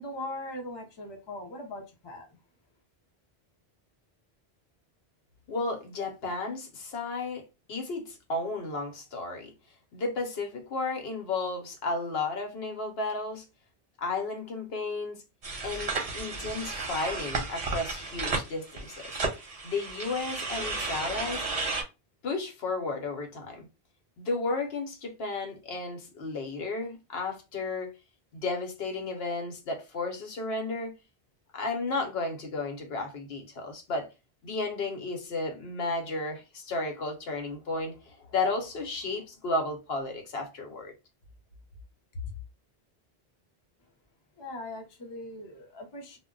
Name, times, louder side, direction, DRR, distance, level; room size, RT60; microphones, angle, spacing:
voice 1, 0.0-2.3 44.4-46.2, left 1 dB, 30° left, 0.5 m, -40 dB
voice 2, 5.5-9.5 9.9-13.4 14.0-15.2 15.6-19.1 19.6-21.5 22.2-23.7 24.2-27.9 28.3-30.9 31.5-34.1 34.4-40.9, left 3 dB, 75° left, 1.0 m, -33 dB
sound 1, 15.4-21.8, right 3 dB, 40° right, 0.6 m, -33 dB
2.2 x 2.0 x 3.7 m
omnidirectional pair, 1.0 m